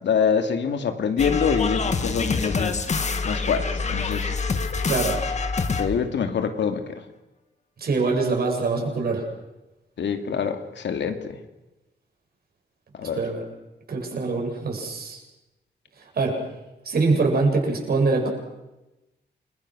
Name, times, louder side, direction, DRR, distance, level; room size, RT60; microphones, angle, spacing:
voice 1, 0.0-2.8 3.2-4.3 5.8-7.0 10.0-11.4 12.9-13.2, left 6 dB, 80° left, 6 dB, 2.7 m, -25 dB
sound 1, 1.2-6.1, left 4 dB, 40° left, 1.9 m, -26 dB
voice 2, 4.8-5.2 7.8-9.3 13.2-13.4 13.9-15.2 16.1-16.4 16.8-18.3, right 3 dB, 55° right, 1 dB, 7.8 m, -23 dB
29.0 x 23.5 x 6.4 m, 0.99 s
wide cardioid pair, 175°, 18 cm